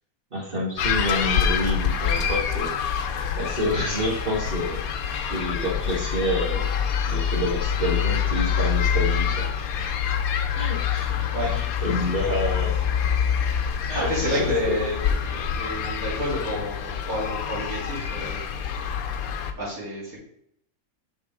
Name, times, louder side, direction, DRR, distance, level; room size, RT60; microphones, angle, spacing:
voice 1, 0.3-2.7 3.3-4.8 5.3-6.8 7.1-9.5 9.8-9.9 10.5-11.1 11.4-12.9 13.9-14.8, equal, 40° right, -3 dB, 1.9 m, -28 dB
sound 1, 0.8-19.5, left 8 dB, 80° left, 1.2 m, -26 dB
voice 2, 11.3-12.0 13.6-18.8 19.5-20.2, left 1 dB, 80° right, -10 dB, 3.8 m, -30 dB
6.4 x 5.9 x 3.7 m, 0.73 s
omnidirectional pair, 1.5 m